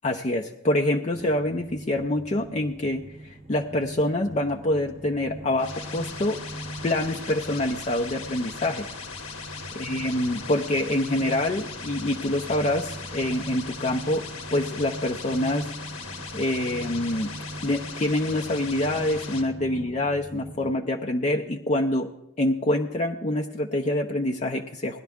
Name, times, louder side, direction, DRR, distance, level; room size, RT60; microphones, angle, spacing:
voice 1, 0.0-6.4 6.8-8.9 9.8-14.2 14.5-15.7 16.3-17.3 17.6-22.1 22.4-25.0, left 1 dB, 35° left, 3 dB, 0.6 m, -26 dB
sound 1, 1.1-20.7, right 1 dB, 30° right, 0.8 m, -41 dB
sound 2, 5.6-19.4, left 5 dB, 80° left, 1.9 m, -39 dB
17.5 x 11.5 x 3.6 m, 0.89 s
head